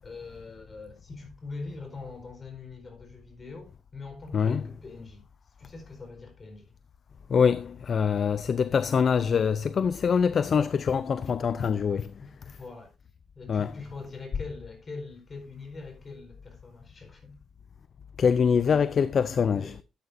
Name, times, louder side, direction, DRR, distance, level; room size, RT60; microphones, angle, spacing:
voice 1, 0.0-5.2 5.6-6.6 8.8-8.9 10.5-10.8 11.6-11.7 12.2-12.9 13.3-17.4 19.5-19.8, left 3 dB, 35° left, 4.7 m, -43 dB
voice 2, 7.3-12.1 13.5-13.7 18.2-19.7, left 6 dB, 50° left, 0.5 m, -24 dB
12.5 x 9.0 x 2.6 m
cardioid pair, 90°, 0 cm